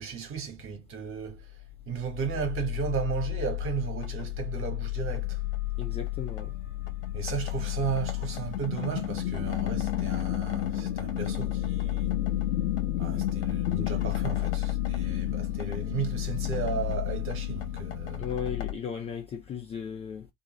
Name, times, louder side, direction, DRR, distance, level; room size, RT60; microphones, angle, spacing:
voice 1, 0.0-1.6 1.9-5.4 7.1-12.2 12.8-18.2, right 7 dB, 35° right, 1.3 m, -35 dB
sound 1, 1.3-18.7, left 14 dB, 70° left, 0.8 m, -31 dB
voice 2, 5.8-6.5 18.2-20.3, left 7 dB, 20° left, 0.3 m, -36 dB
2.6 x 2.6 x 3.0 m
figure-of-eight pair, 70°, 37 cm